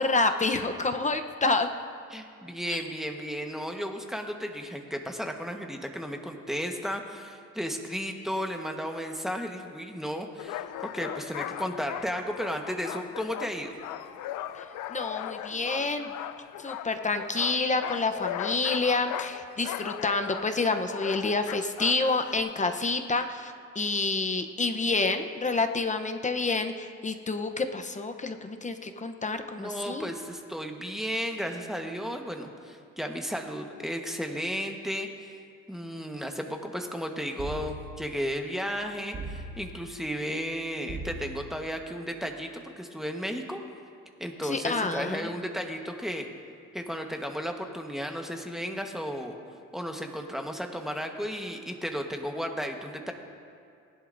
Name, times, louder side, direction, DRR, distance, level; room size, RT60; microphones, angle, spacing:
voice 1, 0.0-1.7 2.7-2.8 14.5-16.1 16.6-30.1 44.4-45.4, left 3 dB, 25° left, 7 dB, 0.8 m, -28 dB
voice 2, 2.1-13.8 29.6-35.4 35.7-43.6 44.2-46.3 46.7-49.4 49.7-53.1, equal, ahead, 3 dB, 1.2 m, -34 dB
sound 1, 10.4-22.4, left 11 dB, 85° left, 0.5 m, -38 dB
sound 2, 37.4-38.1 39.1-39.9 40.9-41.6, right 2 dB, 50° right, 2.1 m, -39 dB
19.5 x 11.0 x 2.6 m, 2.5 s
cardioid pair, 90°, 30 cm